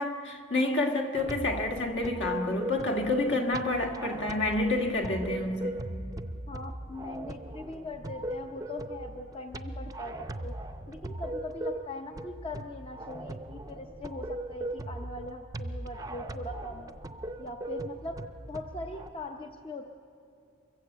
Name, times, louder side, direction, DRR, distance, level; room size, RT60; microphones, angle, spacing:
voice 1, 0.0-5.8, left 2 dB, 60° left, 3 dB, 1.8 m, -29 dB
sound 1, 1.1-19.1, right 1 dB, 15° right, 0.6 m, -39 dB
voice 2, 6.5-10.5 10.9-17.0 17.4-18.2 18.5-19.9, left 2 dB, 25° left, 4 dB, 0.7 m, -41 dB
24.0 x 15.5 x 8.0 m, 2.5 s
head